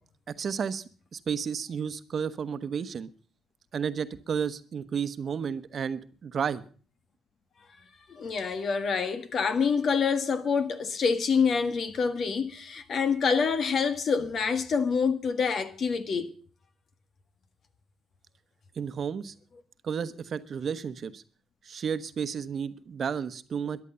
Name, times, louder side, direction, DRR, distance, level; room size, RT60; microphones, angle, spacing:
voice 1, 0.3-0.8 1.1-3.1 3.7-6.6 18.7-19.3 19.8-21.2 21.6-23.8, right 7 dB, 50° right, 1.0 m, -32 dB
voice 2, 8.1-16.3, left 5 dB, 55° left, 1.6 m, -26 dB
14.0 x 11.0 x 6.8 m
cardioid pair, 90°, 0 cm